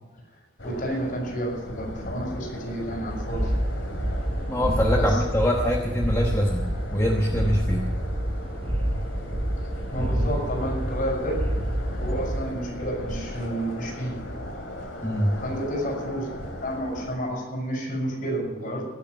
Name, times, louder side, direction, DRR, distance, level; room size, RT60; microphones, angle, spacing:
sound 1, 0.6-17.2, left 1 dB, 65° left, 2.6 m, -38 dB
voice 1, 0.6-3.5 4.9-5.2 9.9-11.5 12.0-14.3 15.4-16.3 16.6-18.9, right 1 dB, 45° left, -2 dB, 5.9 m, -30 dB
sound 2, 3.1-12.5, right 1 dB, 25° right, 0.8 m, -28 dB
voice 2, 4.5-6.6 6.9-7.8 15.0-15.4, equal, 15° left, -1 dB, 1.1 m, -24 dB
18.5 x 6.7 x 9.2 m, 1.2 s
head